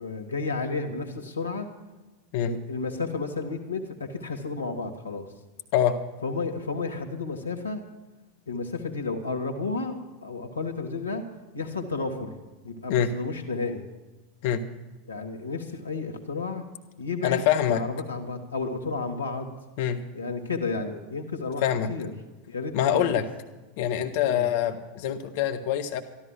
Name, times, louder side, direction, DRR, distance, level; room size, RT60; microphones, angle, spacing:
voice 1, 0.0-1.7 2.4-5.3 6.2-7.8 8.5-10.0 10.2-11.2 11.5-12.4 12.6-13.8 15.1-16.6 17.0-19.5 20.1-22.1 22.5-23.0 24.2-24.5, left 4 dB, 85° left, 3 dB, 1.7 m, -32 dB
voice 2, 17.2-17.8 19.8-20.0 21.6-21.9 22.7-23.3 23.8-26.0, left 10 dB, 55° left, 7 dB, 1.4 m, -24 dB
13.0 x 13.0 x 5.9 m, 1.2 s
figure-of-eight pair, 90°, 0 cm